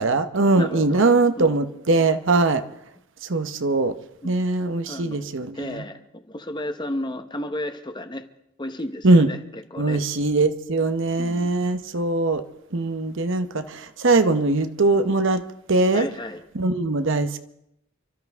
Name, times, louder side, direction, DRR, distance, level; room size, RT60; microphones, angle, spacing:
voice 1, 0.0-2.6 3.3-3.9 4.2-5.8 9.0-9.3 9.8-12.4 12.7-15.4 15.7-16.1 16.5-17.4, right 3 dB, 60° right, 0.9 m, -21 dB
voice 2, 0.6-1.0 1.4-1.6 4.2-4.5 4.9-8.3 8.6-10.0 11.2-11.5 15.9-16.4, left 1 dB, 20° left, 1.0 m, -33 dB
29.5 x 13.0 x 3.6 m
head